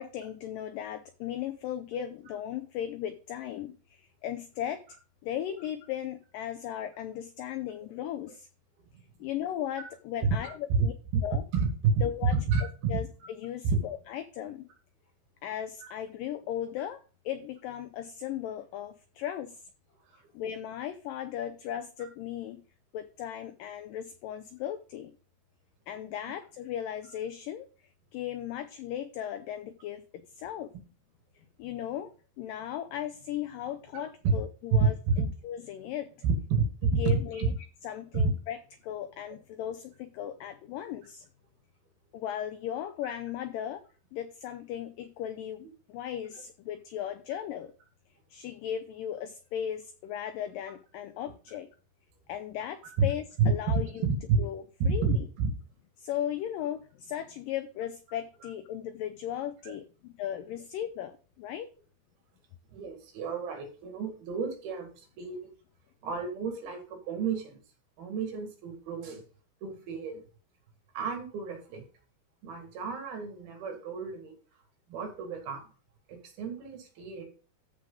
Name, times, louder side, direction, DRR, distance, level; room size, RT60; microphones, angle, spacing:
voice 1, 0.0-4.8 5.2-8.5 9.2-10.9 11.2-11.4 12.0-12.3 12.9-14.7 15.4-19.6 20.3-22.6 22.9-25.1 25.9-27.7 28.1-30.7 31.6-32.1 32.4-34.9 35.4-36.2 37.0-37.5 37.8-38.6 38.8-41.3 42.1-43.8 44.1-47.7 48.3-51.7 52.3-54.1 54.4-55.2 56.0-61.7, left 10 dB, 90° left, 8 dB, 1.9 m, -37 dB
voice 2, 11.5-12.0 12.3-13.3 13.6-13.8 15.8-15.9 20.1-20.2 33.9-34.0 34.7-35.2 36.2-37.5 38.1-38.3 53.0-53.1 53.4-54.4 54.8-55.5 59.6-59.7 62.7-65.5 66.0-67.6 68.0-69.2 69.6-70.2 70.9-71.8 72.4-74.4 74.9-75.6 76.1-77.2, right 4 dB, 70° right, 4 dB, 3.6 m, -29 dB
14.0 x 4.9 x 3.8 m, 0.37 s
omnidirectional pair, 4.7 m